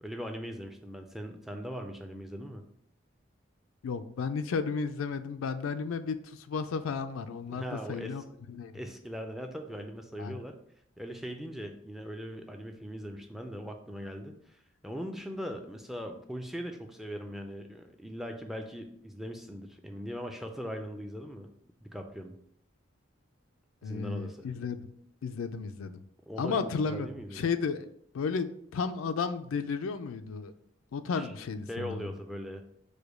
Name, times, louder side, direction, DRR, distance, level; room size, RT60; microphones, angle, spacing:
voice 1, 0.0-2.6 7.5-8.2 8.7-10.5 11.0-21.5 21.8-22.3 23.8-24.5 26.3-26.6 26.8-27.4 31.1-31.3 31.7-32.6, equal, ahead, 4 dB, 0.3 m, -40 dB
voice 2, 3.8-8.2 8.5-8.7 10.2-10.4 23.8-24.9 25.2-26.0 26.4-27.1 27.3-27.9 28.1-30.5 30.9-32.1, left 5 dB, 90° left, 10 dB, 0.4 m, -33 dB
4.9 x 2.2 x 4.8 m, 0.69 s
head